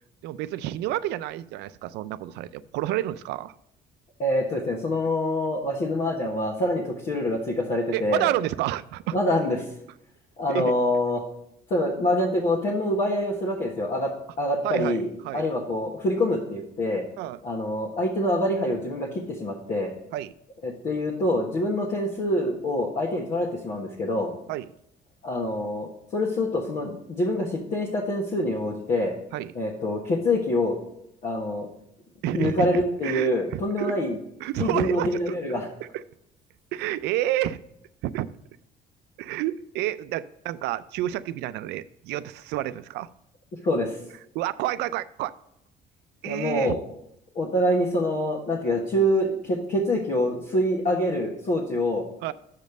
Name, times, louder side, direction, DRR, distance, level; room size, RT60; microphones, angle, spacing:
voice 1, 0.2-3.5 7.9-9.2 10.5-10.8 14.6-15.0 15.2-15.5 17.2-17.4 20.1-20.3 24.5-24.7 29.3-29.5 32.2-33.9 34.4-35.4 35.9-36.0 36.7-37.6 38.0-38.3 39.2-43.1 44.3-45.3 46.2-46.8 52.2-52.3, right 14 dB, 85° right, 14 dB, 0.4 m, -29 dB
voice 2, 4.2-8.3 9.1-9.7 10.4-11.2 11.7-14.1 14.4-17.0 17.4-19.9 20.6-24.3 25.2-29.1 29.5-30.8 31.2-31.7 32.3-34.2 34.6-35.7 43.6-44.0 46.3-46.8 47.3-52.1, left 1 dB, 50° left, -2 dB, 1.4 m, -25 dB
6.6 x 5.2 x 6.4 m, 0.77 s
cardioid pair, 110°, 17 cm